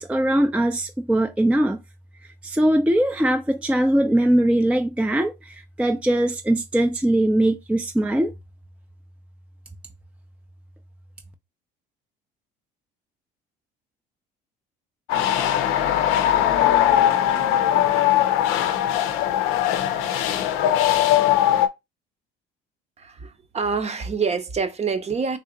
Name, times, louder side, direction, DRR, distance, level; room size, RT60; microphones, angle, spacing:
voice 1, 0.0-1.8 2.4-8.3, right 1 dB, 5° right, 0.5 m, -21 dB
sound 1, 15.1-21.7, left 11 dB, 80° left, 0.6 m, -20 dB
voice 2, 23.0-25.4, right 5 dB, 30° right, 0.8 m, -26 dB
3.4 x 2.8 x 3.8 m
supercardioid pair, 80°, 21 cm